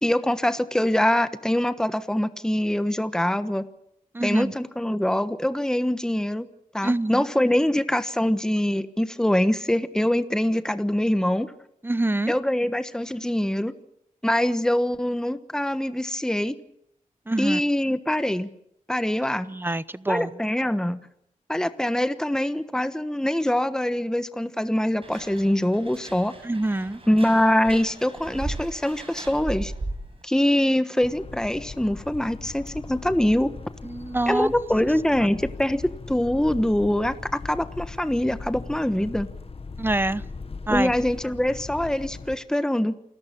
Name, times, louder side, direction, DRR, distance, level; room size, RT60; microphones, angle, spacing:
voice 1, 0.0-3.6 4.2-6.5 6.7-11.5 12.3-13.7 14.2-16.5 17.4-18.5 18.9-19.5 20.1-21.0 21.5-26.3 27.1-29.7 30.2-33.5 34.3-35.8 36.1-39.3 40.7-42.9, left 1 dB, 5° left, 1.2 m, -24 dB
voice 2, 4.1-4.5 6.8-7.3 11.8-12.3 17.3-17.6 19.5-20.3 26.4-27.0 33.8-34.5 39.8-40.2 40.7-40.9, right 2 dB, 15° right, 0.9 m, -25 dB
sound 1, 25.0-30.2, right 2 dB, 40° right, 6.3 m, -37 dB
sound 2, 31.0-42.4, left 4 dB, 45° left, 1.6 m, -39 dB
28.0 x 14.5 x 8.7 m
cardioid pair, 75°, 14 cm